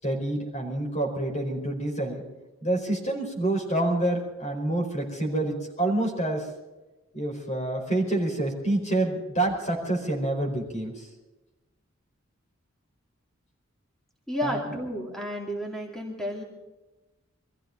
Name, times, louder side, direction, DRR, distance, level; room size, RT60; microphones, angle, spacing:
voice 1, 0.0-2.2 2.6-6.5 7.1-11.1 14.4-14.7, right 1 dB, 35° left, 1 dB, 4.7 m, -27 dB
voice 2, 14.3-16.4, equal, ahead, -1 dB, 2.5 m, -32 dB
24.0 x 14.5 x 4.0 m, 1.1 s
head